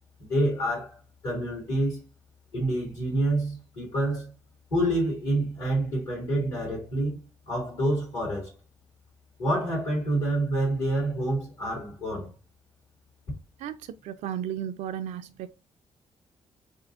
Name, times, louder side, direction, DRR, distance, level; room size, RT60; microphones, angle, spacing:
voice 1, 0.2-2.0 2.5-4.3 4.7-7.2 7.5-8.5 9.4-12.3, right 1 dB, 70° left, 2.8 m, -27 dB
voice 2, 13.6-15.5, right 10 dB, 60° right, 0.4 m, -34 dB
7.2 x 2.7 x 2.4 m
hypercardioid pair, 40°, 14 cm